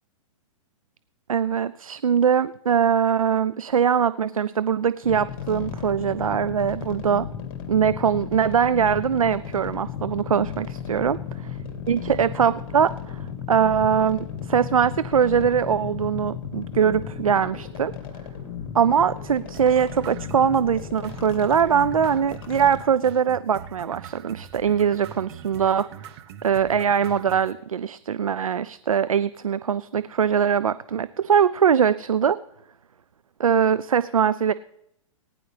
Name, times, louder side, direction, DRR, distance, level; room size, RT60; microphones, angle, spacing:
voice 1, 1.3-7.3 7.7-11.2 11.9-17.9 18.7-25.9 26.4-32.4 33.4-34.5, right 7 dB, 90° right, 15 dB, 0.4 m, -22 dB
sound 1, 5.0-22.8, left 8 dB, 45° left, 2.7 m, -35 dB
sound 2, 19.5-27.5, right 9 dB, 50° right, 1.1 m, -42 dB
19.0 x 10.0 x 3.3 m, 0.79 s
hypercardioid pair, 115°, 17 cm